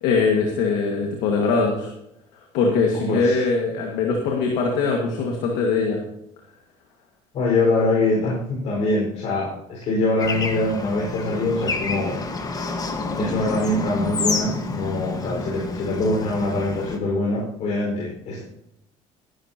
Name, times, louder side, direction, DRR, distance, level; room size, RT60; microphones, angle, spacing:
voice 1, 0.0-1.9 2.5-6.0, left 4 dB, 85° left, 0 dB, 1.9 m, -21 dB
voice 2, 2.9-3.4 7.3-12.2 13.1-18.4, left 2 dB, 60° left, -4 dB, 5.0 m, -24 dB
Bird / Traffic noise roadway noise, 10.2-17.0, left 3 dB, 30° left, 1.5 m, -29 dB
16.5 x 11.0 x 2.9 m, 0.80 s
cardioid pair, 105°, 13 cm